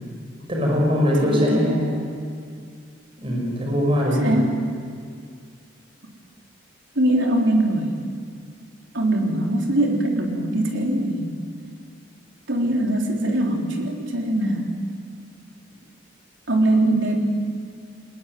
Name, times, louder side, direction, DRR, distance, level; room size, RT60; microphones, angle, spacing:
voice 1, 0.5-1.9 3.2-4.4, equal, 30° right, -2 dB, 5.7 m, -21 dB
voice 2, 1.3-1.7 4.2-4.6 6.9-7.9 8.9-11.3 12.5-14.7 16.5-17.2, right 1 dB, 70° right, 0 dB, 3.8 m, -22 dB
22.0 x 20.0 x 9.5 m, 2.2 s
head